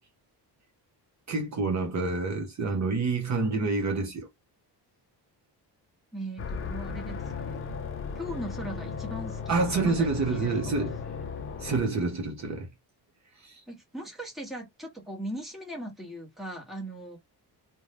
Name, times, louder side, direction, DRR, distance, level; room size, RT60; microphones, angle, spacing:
voice 1, 1.3-4.3 9.5-11.0 11.6-12.7 13.4-13.6, right 3 dB, 40° right, 0.7 m, -28 dB
voice 2, 6.1-7.6 8.1-10.9 11.7-11.8 13.7-17.2, right 1 dB, ahead, 0.9 m, -39 dB
sound 1, 6.4-11.8, left 5 dB, 35° left, 0.4 m, -36 dB
2.6 x 2.2 x 3.2 m
wide cardioid pair, 160°, 41 cm